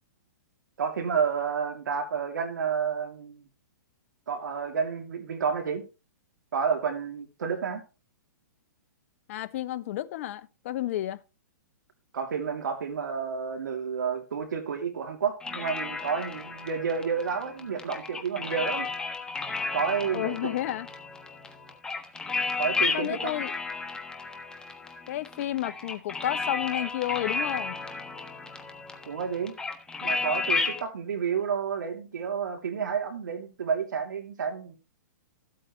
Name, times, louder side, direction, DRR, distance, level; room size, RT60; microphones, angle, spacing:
voice 1, 0.8-3.5 4.3-5.8 6.5-7.8 12.1-18.9 19.7-20.4 22.6-23.2 29.1-29.6 30.0-34.8, right 6 dB, 80° right, 3.0 m, -30 dB
voice 2, 9.3-11.2 20.1-20.9 22.9-23.5 25.1-27.8, left 13 dB, 50° left, 1.0 m, -31 dB
sound 1, 15.4-30.8, left 4 dB, 10° left, 1.3 m, -33 dB
14.0 x 8.5 x 3.3 m
hypercardioid pair, 145°, 10 cm